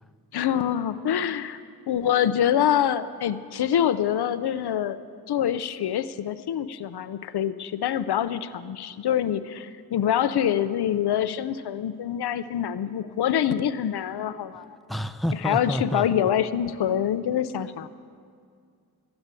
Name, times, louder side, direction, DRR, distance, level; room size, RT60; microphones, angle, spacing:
voice 1, 0.3-1.6 1.9-5.0 5.3-14.8 15.3-17.9, left 10 dB, 90° left, 13 dB, 0.5 m, -25 dB
voice 2, 14.9-16.1, equal, ahead, 9 dB, 0.6 m, -28 dB
13.5 x 9.6 x 8.9 m, 2.2 s
cardioid pair, 45°, 38 cm